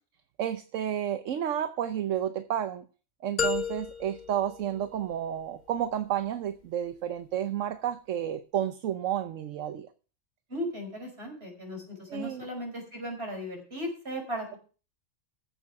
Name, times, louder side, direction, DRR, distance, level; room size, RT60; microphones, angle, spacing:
voice 1, 0.4-2.8 3.2-9.9 12.1-12.4, right 10 dB, 75° right, 11 dB, 1.1 m, -31 dB
sound 1, 3.4-5.4, left 6 dB, 40° left, 1.0 m, -33 dB
voice 2, 10.5-14.6, equal, 50° right, 2 dB, 5.5 m, -36 dB
14.5 x 6.9 x 5.8 m, 0.37 s
omnidirectional pair, 1.3 m